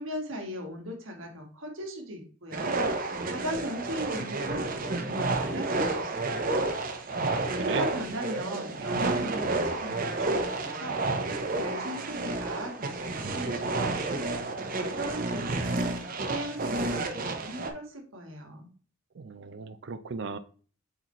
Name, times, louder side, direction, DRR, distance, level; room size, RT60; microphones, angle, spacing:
voice 1, 0.0-2.8 3.1-6.5 7.5-11.0 11.4-16.0 16.2-18.7, equal, 85° right, 2 dB, 1.7 m, -38 dB
sound 1, 2.5-17.7, right 2 dB, 45° right, 0.8 m, -30 dB
voice 2, 7.1-7.9 19.1-20.4, right 4 dB, 60° right, 11 dB, 0.5 m, -37 dB
7.9 x 4.0 x 3.0 m, 0.41 s
head